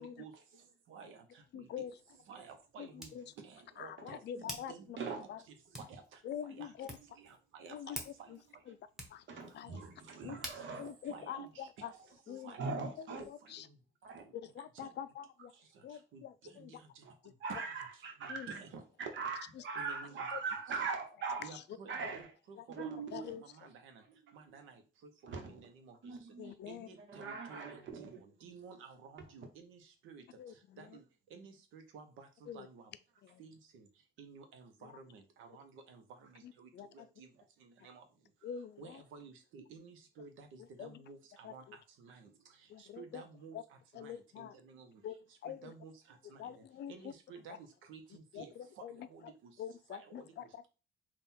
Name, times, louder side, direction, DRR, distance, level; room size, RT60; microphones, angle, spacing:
voice 1, 0.0-1.9 2.3-5.3 5.7-6.2 6.5-8.7 9.6-9.7 10.2-10.7 11.1-11.9 12.4-12.7 13.4-13.8 14.1-14.3 14.7-15.0 15.5-17.4 18.2-18.8 19.7-20.2 21.4-32.9 33.4-38.5 38.8-49.6 49.9-50.5, right 5 dB, 90° right, 0.8 m, -54 dB
Hands, 1.4-12.2, equal, ahead, 1.1 m, -52 dB
voice 2, 1.5-2.0 2.8-3.2 3.8-5.0 5.3-5.4 6.2-6.9 7.7-8.0 8.3-8.4 8.7-8.8 9.1-9.3 9.5-9.8 10.2-10.4 10.8-11.9 12.3-12.5 13.0-13.7 14.3-15.5 15.8-16.7 18.3-18.5 19.6-19.7 20.3-20.4 22.0-22.1 22.6-22.7 23.1-23.4 26.4-26.9 30.4-31.0 32.5-32.7 33.2-33.4 34.8-34.9 36.4-37.1 38.4-39.0 40.8-41.0 41.4-41.8 42.7-43.2 43.5-43.6 43.9-44.5 45.0-45.2 45.4-45.7 46.4-47.1 48.3-49.1 49.6-50.7, left 9 dB, 60° left, 0.4 m, -45 dB
voice 3, 9.3-10.9 11.8-13.3 14.0-14.2 17.0-17.1 17.4-18.6 19.0-21.5 21.9-22.3 22.7-23.4 25.3-25.6 26.0-26.5 27.0-28.2 42.1-42.2, right 4 dB, 70° right, 1.1 m, -41 dB
3.6 x 2.4 x 4.3 m
cardioid pair, 90°, 20 cm